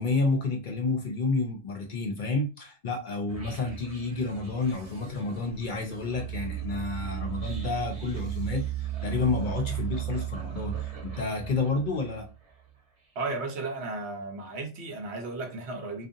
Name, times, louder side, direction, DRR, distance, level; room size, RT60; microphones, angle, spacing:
voice 1, 0.0-12.3, left 3 dB, 60° left, 0.6 m, -30 dB
sound 1, 3.3-12.5, right 11 dB, 40° right, 0.7 m, -36 dB
voice 2, 13.2-16.1, right 3 dB, 75° right, 0.9 m, -34 dB
2.6 x 2.4 x 2.5 m
omnidirectional pair, 1.1 m